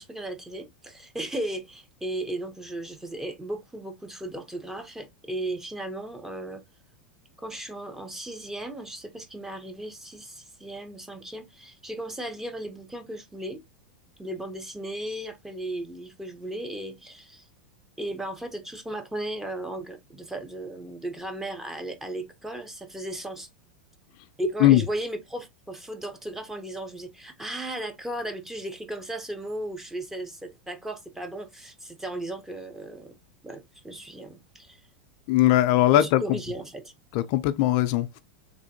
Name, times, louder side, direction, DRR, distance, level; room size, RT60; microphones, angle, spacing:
voice 1, 0.0-6.6 7.4-13.6 14.2-17.5 18.0-23.5 24.4-33.2 33.4-34.8 35.9-36.9, right 1 dB, 5° right, 0.7 m, -36 dB
voice 2, 35.3-36.2 37.1-38.2, left 14 dB, 55° left, 0.3 m, -20 dB
3.4 x 2.5 x 2.7 m
hypercardioid pair, 115°, 5 cm